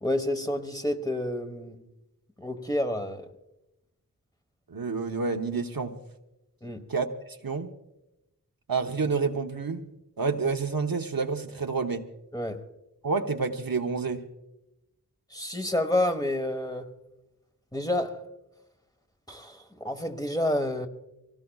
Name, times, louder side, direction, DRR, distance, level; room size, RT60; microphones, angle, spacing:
voice 1, 0.0-1.8 2.4-3.3 6.6-6.9 12.3-12.6 15.3-16.9 17.7-18.3 19.3-20.9, left 1 dB, 10° left, 1.3 m, -29 dB
voice 2, 4.7-5.9 6.9-7.7 8.7-9.9 10.2-12.0 13.0-14.2, right 4 dB, 75° right, 1.0 m, -29 dB
25.0 x 18.0 x 2.4 m
wide cardioid pair, 45°, 35 cm